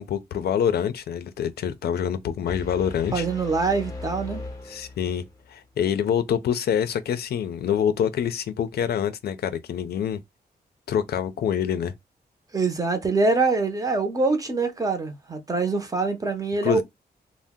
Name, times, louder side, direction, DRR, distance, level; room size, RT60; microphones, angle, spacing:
voice 1, 0.0-3.2 4.7-10.2 10.9-11.9 16.6-16.8, left 8 dB, 70° left, 0.4 m, -26 dB
sound 1, 2.5-5.4, left 3 dB, 20° left, 0.6 m, -38 dB
voice 2, 3.1-4.4 12.5-16.8, right 3 dB, 20° right, 0.6 m, -24 dB
2.6 x 2.0 x 3.5 m
wide cardioid pair, 145°, 17 cm